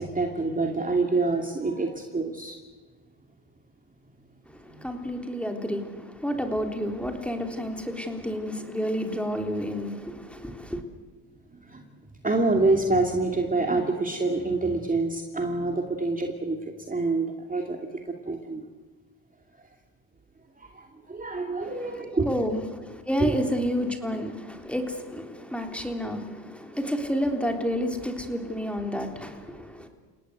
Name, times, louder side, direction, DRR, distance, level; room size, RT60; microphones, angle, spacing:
voice 1, 0.0-2.6 4.7-5.2 11.5-11.8 12.2-17.8 18.0-18.6 20.6-22.3 23.2-23.3, right 3 dB, 20° right, 2.5 m, -27 dB
voice 2, 4.5-10.8 21.6-29.9, equal, 5° left, 3.6 m, -30 dB
30.0 x 18.0 x 8.1 m
supercardioid pair, 80°, 43 cm